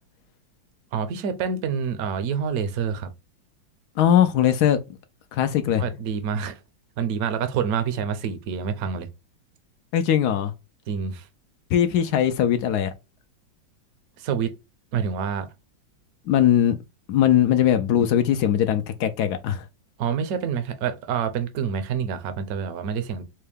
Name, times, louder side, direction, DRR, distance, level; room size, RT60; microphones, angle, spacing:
voice 1, 0.9-3.1 5.7-6.6 7.0-9.1 10.9-11.3 14.2-14.5 14.9-15.5 20.0-23.2, right 7 dB, 65° right, 1.0 m, -27 dB
voice 2, 4.0-4.8 5.3-5.8 9.9-10.5 11.7-12.9 16.3-16.7 17.1-19.6, left 10 dB, 75° left, 0.9 m, -20 dB
4.5 x 2.2 x 3.4 m
omnidirectional pair, 2.1 m